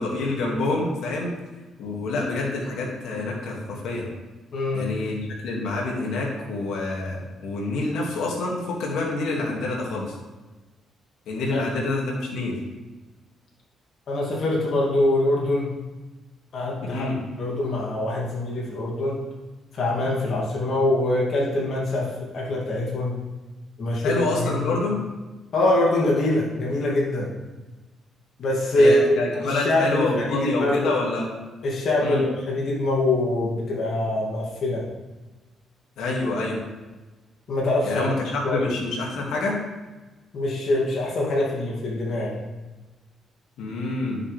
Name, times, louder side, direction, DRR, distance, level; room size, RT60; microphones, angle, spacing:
voice 1, 0.0-1.3 1.8-4.1 4.7-10.1 11.3-12.6 16.9-17.2 24.0-25.0 28.8-31.3 32.0-32.2 36.0-36.6 37.8-39.6 43.6-44.2, left 2 dB, 85° left, -2 dB, 2.3 m, -27 dB
voice 2, 4.5-4.9 11.5-11.6 14.1-15.8 16.5-19.2 19.7-23.2 23.8-24.7 25.5-27.3 28.4-30.9 31.6-34.8 37.5-38.1 38.4-38.6 40.3-42.4, left 1 dB, 60° left, -4 dB, 2.6 m, -24 dB
10.0 x 7.4 x 3.5 m, 1.2 s
cardioid pair, 90°, 0 cm